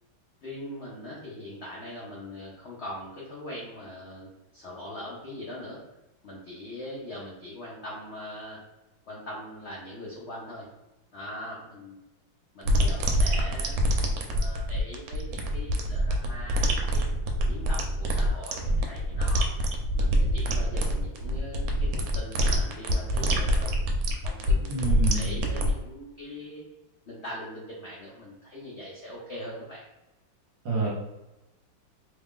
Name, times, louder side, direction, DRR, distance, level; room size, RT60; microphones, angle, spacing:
voice 1, 0.4-5.8 6.2-8.6 9.1-10.7 11.1-12.0 12.5-17.1 17.5-19.5 19.9-23.7 24.1-24.9 25.1-26.6 27.1-29.8, left 1 dB, 70° left, -5 dB, 0.6 m, -41 dB
sound 1, 12.7-25.7, equal, 80° right, 1.4 m, -25 dB
voice 2, 24.7-25.3 30.6-30.9, right 4 dB, 60° right, -3 dB, 1.4 m, -27 dB
3.3 x 2.4 x 3.6 m, 0.99 s
omnidirectional pair, 2.2 m